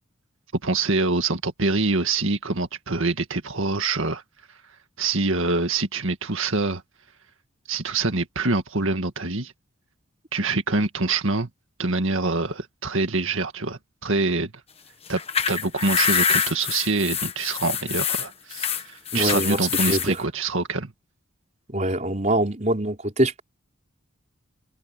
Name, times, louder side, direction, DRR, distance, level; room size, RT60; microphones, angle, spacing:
voice 1, 0.6-4.2 5.0-6.8 7.7-9.5 10.3-11.5 11.8-14.5 15.1-15.2 15.5-20.9, right 3 dB, 65° right, 2.0 m, -25 dB
sound 1, 15.1-20.1, left 7 dB, 25° left, 1.4 m, -25 dB
voice 2, 19.1-20.2 21.7-23.4, right 1 dB, 35° right, 4.4 m, -24 dB
head